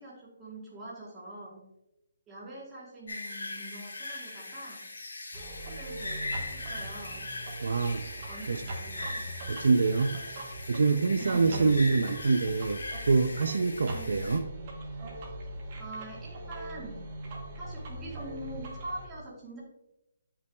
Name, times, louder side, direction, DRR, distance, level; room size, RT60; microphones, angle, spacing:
voice 1, 0.0-1.6 2.3-4.8 5.3-7.3 8.3-9.2 11.2-11.8 13.9-14.3 15.8-17.0 17.5-19.6, right 1 dB, 10° right, -5 dB, 1.2 m, -44 dB
sound 1, 3.1-14.4, left 2 dB, 85° left, 1.7 m, -40 dB
sound 2, 5.3-19.1, right 2 dB, 30° right, 1.0 m, -42 dB
voice 2, 7.6-8.0 8.5-8.6 9.5-10.2 10.7-14.5, right 4 dB, 60° right, 9 dB, 0.4 m, -25 dB
7.6 x 5.7 x 2.2 m, 0.88 s
hypercardioid pair, 175°, 0 cm